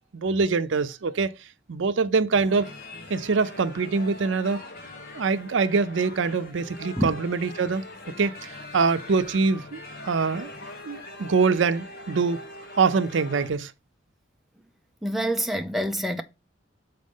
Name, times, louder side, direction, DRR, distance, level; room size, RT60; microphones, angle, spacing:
voice 1, 0.1-1.3 1.7-2.7 3.1-4.6 5.1-7.8 8.2-10.5 10.9-12.4 12.8-13.7, right 4 dB, 85° right, 0.5 m, -24 dB
sound 1, 2.3-13.5, left 1 dB, 50° left, 1.6 m, -42 dB
voice 2, 15.0-16.2, equal, ahead, 0.6 m, -26 dB
6.4 x 4.2 x 5.3 m
head